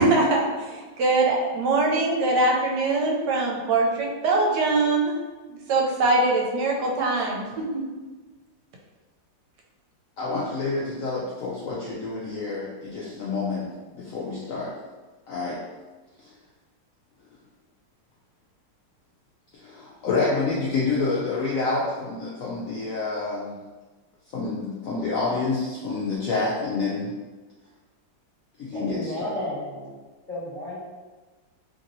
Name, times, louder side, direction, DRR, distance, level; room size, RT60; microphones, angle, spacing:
voice 1, 0.0-5.2 5.5-7.8, right 2 dB, 75° right, -1 dB, 1.1 m, -22 dB
voice 2, 10.2-13.7 13.9-14.7 15.3-15.6 19.6-23.5 24.3-27.1 28.6-29.3, left 3 dB, 85° left, -6 dB, 0.7 m, -28 dB
voice 3, 28.7-29.9 30.3-30.8, equal, 30° left, -12 dB, 1.1 m, -33 dB
2.9 x 2.8 x 2.6 m, 1.3 s
omnidirectional pair, 2.0 m